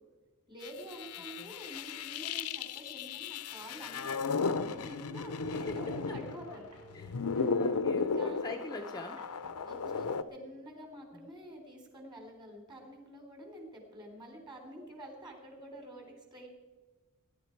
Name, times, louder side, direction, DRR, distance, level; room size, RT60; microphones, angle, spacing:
voice 1, 0.5-6.7 7.3-7.6 8.0-8.4 9.6-16.5, equal, 20° right, 3 dB, 3.6 m, -48 dB
sound 1, 0.6-6.6 6.9-10.2, left 4 dB, 90° left, 0.7 m, -35 dB
sound 2, 3.1-3.2 3.4-7.5 9.2-10.3, equal, 90° right, 4.5 m, -56 dB
voice 2, 5.5-5.8 6.1-6.2 6.9-9.3 11.1-11.3, left 2 dB, 20° left, 5 dB, 0.7 m, -44 dB
20.5 x 11.0 x 4.6 m, 1.2 s
head